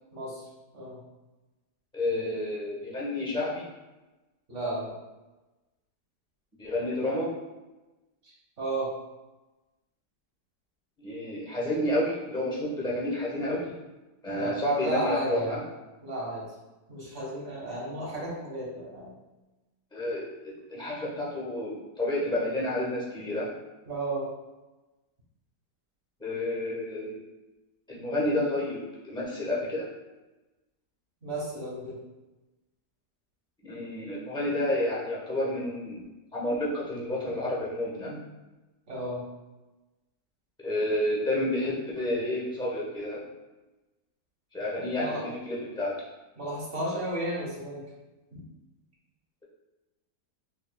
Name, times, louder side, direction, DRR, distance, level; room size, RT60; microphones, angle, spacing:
voice 1, 0.1-0.4 0.7-1.0 4.5-4.9 8.2-8.9 14.3-15.6 16.0-16.5 16.9-19.1 23.8-24.3 31.2-32.0 38.9-39.2 44.8-45.2 46.4-47.8 48.3-48.4, right 1 dB, 45° right, -6 dB, 1.6 m, -33 dB
voice 2, 1.9-3.6 6.6-7.3 11.0-13.7 14.2-15.6 19.9-23.5 26.2-27.2 27.9-28.8 29.0-29.9 33.6-36.0 36.3-38.2 40.6-43.2 44.5-46.0, left 1 dB, 5° left, -5 dB, 0.7 m, -30 dB
5.8 x 2.8 x 2.2 m, 1.1 s
omnidirectional pair, 1.8 m